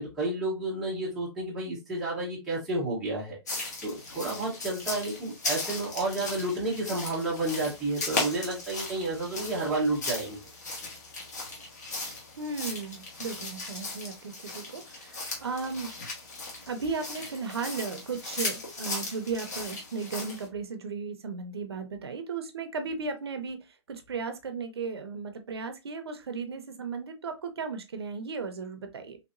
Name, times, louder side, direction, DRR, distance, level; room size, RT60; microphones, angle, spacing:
voice 1, 0.0-10.4, right 2 dB, 5° right, 0.7 m, -31 dB
sound 1, 3.5-20.5, left 3 dB, 40° left, 1.3 m, -37 dB
voice 2, 12.4-15.9 16.7-23.6 23.9-29.2, right 4 dB, 60° right, 0.7 m, -35 dB
3.2 x 2.9 x 2.5 m
hypercardioid pair, 170°, 15 cm